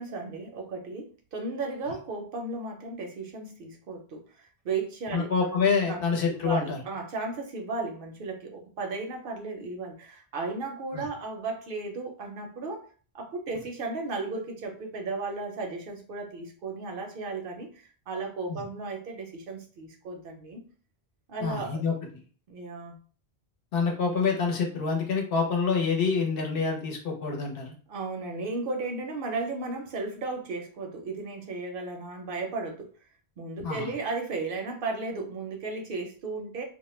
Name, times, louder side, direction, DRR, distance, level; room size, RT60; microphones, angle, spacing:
voice 1, 0.0-5.5 5.9-6.0 6.3-12.9 13.1-20.6 21.3-21.8 22.5-23.0 27.9-32.9 33.4-36.6, right 3 dB, 65° right, 3 dB, 0.7 m, -35 dB
voice 2, 5.1-6.8 10.9-11.0 18.5-18.6 21.4-21.9 23.7-27.7 33.6-33.9, left 5 dB, 65° left, 0 dB, 0.9 m, -27 dB
2.2 x 2.1 x 3.0 m, 0.41 s
omnidirectional pair, 1.1 m